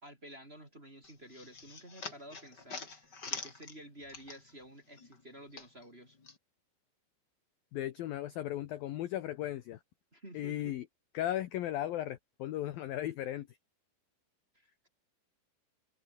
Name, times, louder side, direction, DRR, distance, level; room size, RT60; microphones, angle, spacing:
voice 1, 0.0-6.2 10.1-10.8 14.5-14.9, right 1 dB, 15° right, 3.6 m, -52 dB
sound 1, 1.0-4.7 5.0-6.4, left 4 dB, 25° left, 2.8 m, -45 dB
voice 2, 7.7-9.8 10.3-10.9 11.1-13.5, left 13 dB, 75° left, 2.1 m, -36 dB
omnidirectional pair, 5.8 m